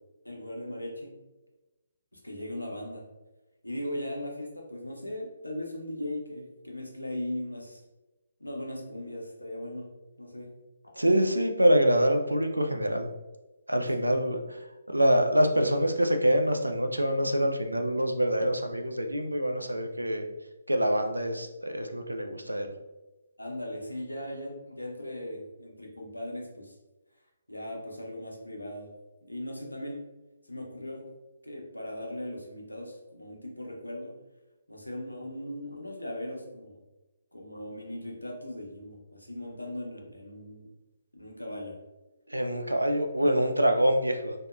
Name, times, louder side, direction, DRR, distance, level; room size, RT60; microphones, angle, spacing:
voice 1, 0.2-1.1 2.1-3.0 3.6-7.8 8.4-9.9 10.2-10.5 13.9-14.0 23.4-26.7 27.5-28.9 29.2-30.0 30.4-31.1 31.4-34.1 34.7-36.8 37.3-40.7 41.1-41.7, left 1 dB, 90° left, -1 dB, 0.6 m, -38 dB
voice 2, 11.0-13.1 13.7-14.4 14.9-20.2 20.7-22.7 42.3-44.3, equal, 85° right, 5 dB, 0.3 m, -25 dB
2.7 x 2.1 x 2.3 m, 1.1 s
figure-of-eight pair, 140°, 0 cm